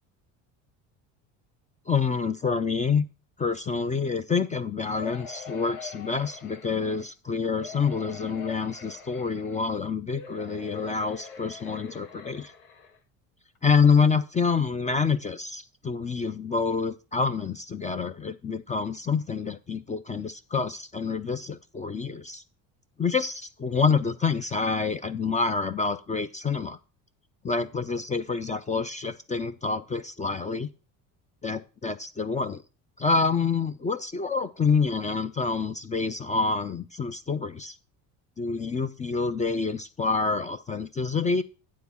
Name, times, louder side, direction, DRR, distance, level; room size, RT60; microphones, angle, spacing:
voice 1, 1.9-3.1 3.4-12.5 13.6-22.4 23.0-26.8 27.4-30.7 31.4-32.6 33.0-37.8 38.4-41.4, left 5 dB, 20° left, 10 dB, 0.4 m, -27 dB
sound 1, 4.9-7.1 7.5-9.7 10.1-13.0 13.5-13.6 13.9-14.0, left 5 dB, 85° left, 1.6 m, -44 dB
9.4 x 3.8 x 7.0 m, 0.34 s
supercardioid pair, 90°, 40 cm